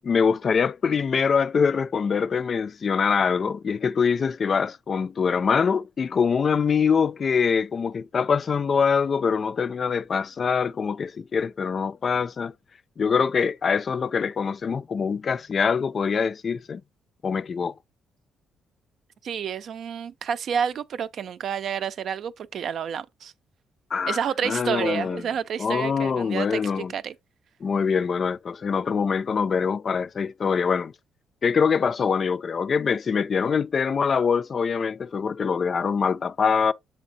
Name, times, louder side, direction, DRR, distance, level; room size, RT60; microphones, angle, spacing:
voice 1, 0.0-12.5 13.0-16.8 17.2-17.7 23.9-24.2 24.4-25.2 25.6-26.9 27.6-30.9 31.4-36.7, left 6 dB, 45° left, 0.4 m, -24 dB
voice 2, 19.2-23.3 24.1-27.1, right 7 dB, 65° right, 0.5 m, -29 dB
7.3 x 3.5 x 4.0 m
cardioid pair, 90°, 0 cm